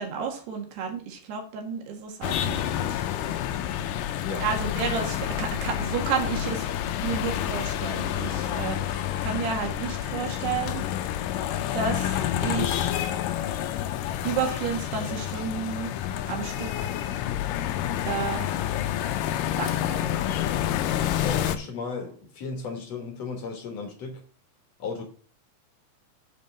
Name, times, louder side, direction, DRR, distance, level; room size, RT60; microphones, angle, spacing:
voice 1, 0.0-3.0 4.4-6.7 7.0-10.8 11.7-12.9 14.2-15.9 16.3-16.9 18.0-18.5 19.6-20.2, right 6 dB, 80° right, 3.8 m, -31 dB
sound 1, 2.2-21.6, left 11 dB, 85° left, 1.9 m, -29 dB
voice 2, 21.2-24.2 24.8-25.0, left 4 dB, 55° left, 2.0 m, -35 dB
7.4 x 5.4 x 5.3 m
omnidirectional pair, 4.7 m